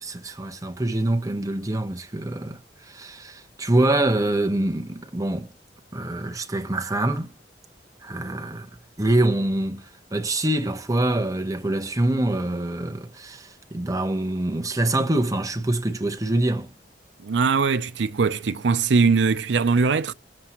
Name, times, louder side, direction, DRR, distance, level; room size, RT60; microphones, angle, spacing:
voice 1, 0.0-2.6 2.9-5.5 5.9-7.3 8.0-8.7 9.0-16.7, right 1 dB, 20° right, 1.0 m, -25 dB
voice 2, 17.2-20.1, right 4 dB, 75° right, 0.5 m, -21 dB
19.0 x 7.5 x 3.0 m
head